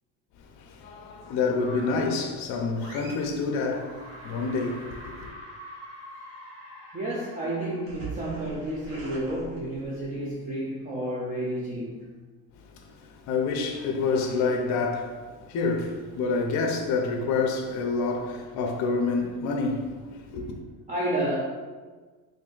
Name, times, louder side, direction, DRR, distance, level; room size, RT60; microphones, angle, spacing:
voice 1, 0.6-5.3 12.8-20.6, left 4 dB, 45° left, 0.5 m, -28 dB
sound 1, 1.6-2.2 2.8-3.4 3.7-10.1, right 1 dB, 80° right, 1.2 m, -44 dB
voice 2, 6.9-12.1 20.9-21.4, right 1 dB, 20° right, 0.4 m, -31 dB
3.3 x 2.6 x 3.8 m
cardioid pair, 145°, 40 cm